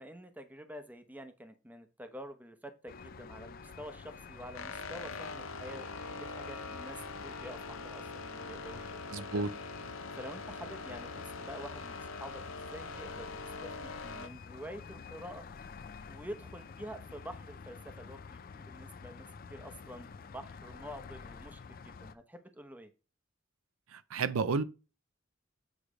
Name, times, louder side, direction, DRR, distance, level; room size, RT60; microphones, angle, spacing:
voice 1, 0.0-9.0 9.3-9.5 10.2-15.4 16.1-22.9, equal, 10° right, 0.8 m, -48 dB
sound 1, 2.9-22.1, left 5 dB, 45° left, 0.4 m, -49 dB
sound 2, 4.5-14.3, left 3 dB, 75° left, 0.7 m, -43 dB
voice 2, 9.1-9.5 23.9-24.6, right 4 dB, 85° right, 0.5 m, -31 dB
8.2 x 3.2 x 5.0 m
head